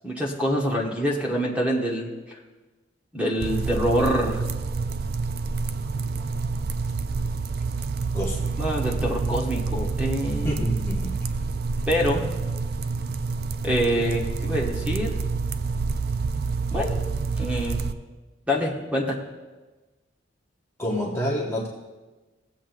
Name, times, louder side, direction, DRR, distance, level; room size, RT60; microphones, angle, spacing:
voice 1, 0.0-2.4 3.1-4.4 8.6-10.6 11.9-12.3 13.6-15.2 16.7-17.0 17.4-17.8 18.5-19.2, equal, 5° right, -2 dB, 1.1 m, -25 dB
sound 1, 3.4-17.9, right 4 dB, 50° right, 0.3 m, -28 dB
voice 2, 8.1-8.7 10.4-11.2 20.8-21.7, equal, 15° left, -3 dB, 0.9 m, -28 dB
17.0 x 7.4 x 2.6 m, 1.2 s
head